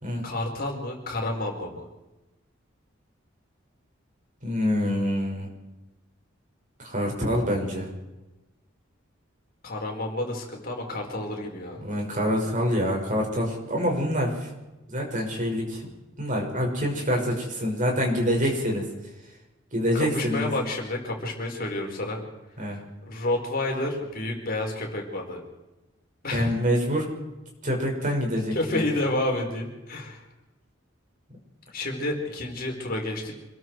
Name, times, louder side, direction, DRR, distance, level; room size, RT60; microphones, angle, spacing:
voice 1, 0.2-1.9 9.6-11.8 18.4-18.5 19.9-22.2 22.7-25.4 26.2-26.5 28.0-28.1 28.5-30.2 31.7-33.3, left 2 dB, 50° left, 1 dB, 4.7 m, -30 dB
voice 2, 4.4-5.5 6.8-7.9 11.8-14.5 14.9-15.8 16.2-18.8 19.7-20.5 22.6-22.8 26.3-27.1 27.6-28.8, equal, 40° right, 0 dB, 6.1 m, -26 dB
27.0 x 21.5 x 4.8 m, 1.0 s
head